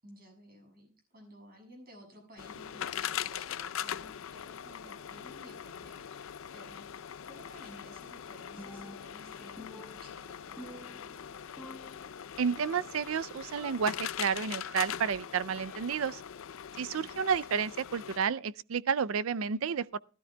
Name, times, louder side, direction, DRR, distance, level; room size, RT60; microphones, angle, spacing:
voice 1, 0.0-6.2 6.5-11.2 16.7-17.2, equal, 50° right, 6.9 m, -55 dB
sound 1, 2.4-18.2, left 9 dB, 75° left, 0.5 m, -41 dB
Percussion, 8.6-9.3 9.6-11.3 11.6-12.3 12.6-13.1 13.6-15.1 15.6-16.2, equal, ahead, 1.2 m, -51 dB
voice 2, 12.4-16.2 16.8-20.0, right 6 dB, 85° right, 0.5 m, -31 dB
19.0 x 13.0 x 2.3 m
head